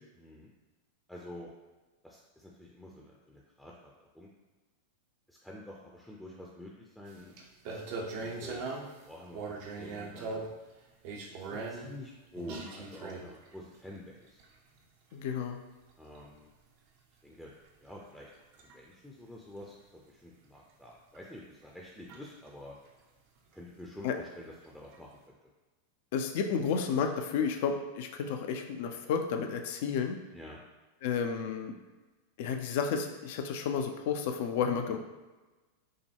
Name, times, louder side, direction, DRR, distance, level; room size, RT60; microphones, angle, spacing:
voice 1, 0.1-0.5 1.1-1.5 2.0-4.3 5.3-7.3 7.7-7.9 8.2-10.5 11.3-14.4 16.0-16.5 17.2-17.5 17.8-22.8 23.5-25.4 30.3-30.6, left 1 dB, ahead, -3 dB, 0.5 m, -48 dB
sound 1, 7.1-7.2 7.4-9.0 9.3-10.6 11.0-11.9 12.4-13.5 14.3-14.5 16.2-16.4 18.0-18.1 18.5-18.7 21.1-21.2 21.6-21.7 22.1-22.5 24.9-25.0, right 3 dB, 45° right, 0.6 m, -39 dB
voice 2, 15.1-15.6 24.0-24.1 26.1-30.2 31.0-31.7 32.4-35.0, left 6 dB, 50° left, 5 dB, 0.4 m, -31 dB
5.4 x 2.2 x 3.4 m, 1.2 s
figure-of-eight pair, 90°, 0 cm